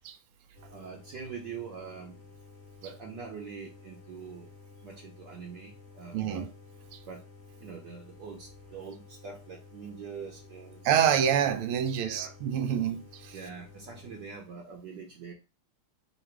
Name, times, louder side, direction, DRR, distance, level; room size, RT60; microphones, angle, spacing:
sound 1, 0.5-14.5, left 4 dB, 25° left, 1.1 m, -52 dB
voice 1, 0.7-2.2 2.8-4.5 4.8-6.5 7.1-7.2 7.6-10.9 12.0-12.4 13.3-15.3, right 6 dB, 65° right, 1.3 m, -44 dB
voice 2, 6.1-6.5 6.9-7.0 10.8-13.3, right 9 dB, 85° right, 1.5 m, -27 dB
3.9 x 2.4 x 4.4 m
omnidirectional pair, 2.4 m